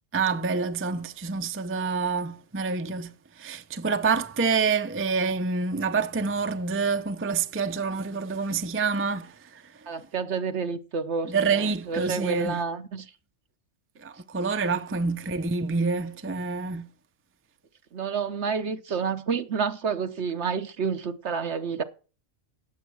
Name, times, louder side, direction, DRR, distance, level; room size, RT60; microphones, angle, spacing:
voice 1, 0.1-9.9 11.3-12.6 14.0-16.9, right 4 dB, 15° right, 0.5 m, -27 dB
voice 2, 9.9-13.1 17.9-21.8, right 6 dB, 60° right, 1.2 m, -29 dB
17.5 x 7.3 x 4.6 m
omnidirectional pair, 1.3 m